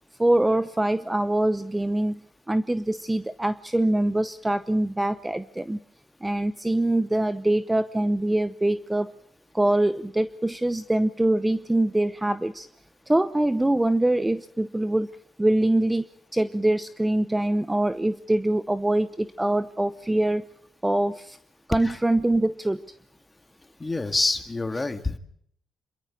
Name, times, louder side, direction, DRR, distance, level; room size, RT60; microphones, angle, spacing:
voice 1, 0.2-2.2 2.5-5.8 6.2-9.1 9.5-12.7 13.1-15.1 15.4-16.1 16.3-20.4 20.8-21.4 21.7-22.8, right 1 dB, 10° right, 13 dB, 0.8 m, -24 dB
voice 2, 23.8-25.2, left 2 dB, 20° left, 8 dB, 2.1 m, -27 dB
27.5 x 13.5 x 9.3 m, 0.68 s
cardioid pair, 90°, 0 cm